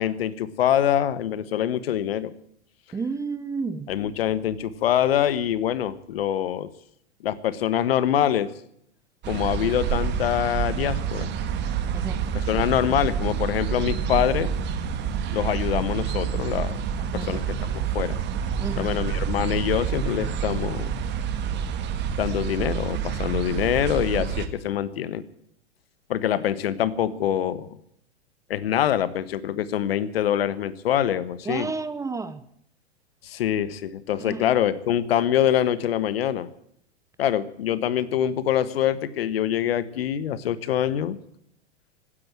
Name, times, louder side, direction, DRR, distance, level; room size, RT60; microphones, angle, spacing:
voice 1, 0.0-2.3 3.9-6.7 7.2-8.5 9.3-11.3 12.3-14.5 15.3-16.8 17.1-18.2 18.7-20.9 22.2-25.2 26.1-27.7 28.5-31.7 33.2-36.5 37.2-41.2, left 10 dB, 60° left, 16 dB, 1.3 m, -25 dB
voice 2, 2.9-3.9 11.9-12.2 17.1-17.4 18.6-18.9 31.5-32.4 34.2-34.4, right 4 dB, 10° right, 13 dB, 0.7 m, -31 dB
sound 1, 9.2-24.5, right 7 dB, 30° right, 1.7 m, -28 dB
16.0 x 10.0 x 9.1 m, 0.71 s
figure-of-eight pair, 100°, 33 cm